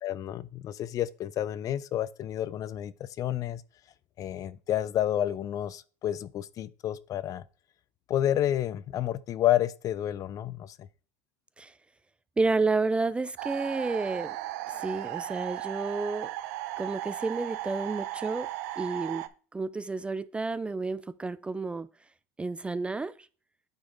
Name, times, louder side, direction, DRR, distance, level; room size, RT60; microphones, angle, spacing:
voice 1, 0.0-3.6 4.2-7.4 8.1-10.9, left 11 dB, 40° left, 0.5 m, -30 dB
voice 2, 12.4-14.4 14.7-16.3 16.8-18.5 18.8-21.9 22.4-23.3, right 3 dB, 15° right, 0.3 m, -31 dB
sound 1, 13.4-19.3, right 16 dB, 75° right, 0.6 m, -36 dB
8.8 x 3.9 x 3.9 m
supercardioid pair, 100°, 9 cm